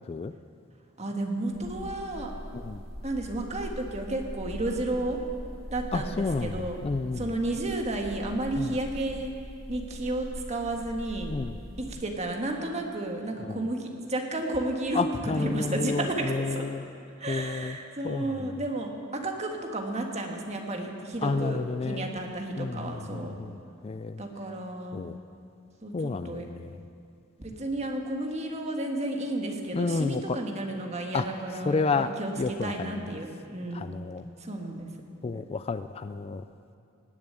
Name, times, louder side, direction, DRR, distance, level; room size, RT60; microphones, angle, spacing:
voice 1, 1.0-2.3 3.0-5.2 5.7-6.8 7.2-9.3 9.7-11.3 11.8-16.6 17.2-23.3 24.2-25.1 25.8-25.9 26.2-26.4 27.4-33.9 34.4-34.9, right 2 dB, 35° right, 2 dB, 1.7 m, -32 dB
sound 1, 1.5-11.9, equal, ahead, 2.9 m, -41 dB
voice 2, 5.9-7.2 8.6-8.7 11.3-11.6 13.4-13.6 14.9-16.8 17.3-17.8 18.0-18.5 21.2-22.1 22.6-23.6 23.8-24.2 24.9-25.2 25.9-26.8 29.7-30.4 31.1-31.3 31.5-32.1 32.4-33.1 33.7-34.2 35.2-36.4, left 4 dB, 30° left, 11 dB, 0.3 m, -31 dB
18.5 x 7.2 x 9.0 m, 2.4 s
head